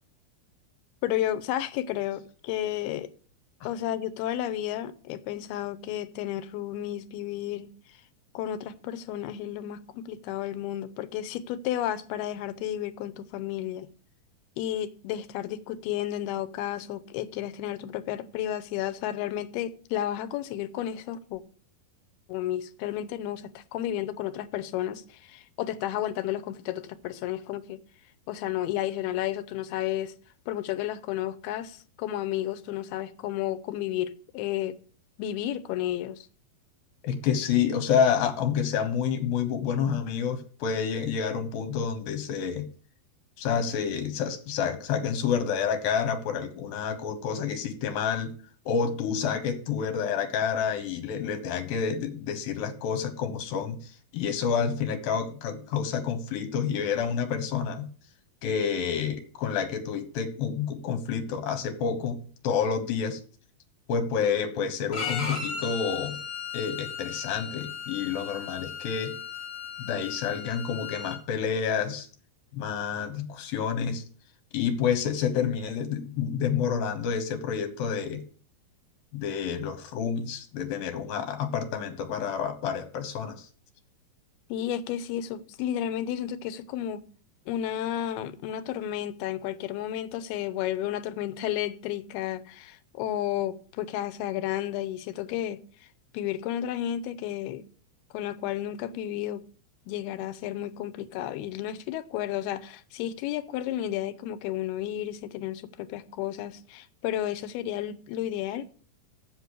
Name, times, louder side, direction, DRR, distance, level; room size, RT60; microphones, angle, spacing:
voice 1, 1.0-3.1 3.6-7.7 8.3-13.9 14.6-21.4 22.3-27.8 28.3-30.1 30.5-34.8 35.2-36.3 84.5-87.0 87.5-95.9 96.1-97.6 98.1-99.4 99.9-108.7, left 12 dB, 90° left, 2.7 m, -32 dB
voice 2, 37.0-42.7 43.4-48.3 48.7-57.9 58.4-63.2 63.9-66.2 66.5-69.1 69.8-72.1 72.5-74.0 74.5-78.2 79.1-83.5, left 7 dB, 70° left, 3.0 m, -29 dB
Bowed string instrument, 64.9-71.2, left 6 dB, 45° left, 3.5 m, -36 dB
8.0 x 6.8 x 8.1 m
omnidirectional pair, 4.4 m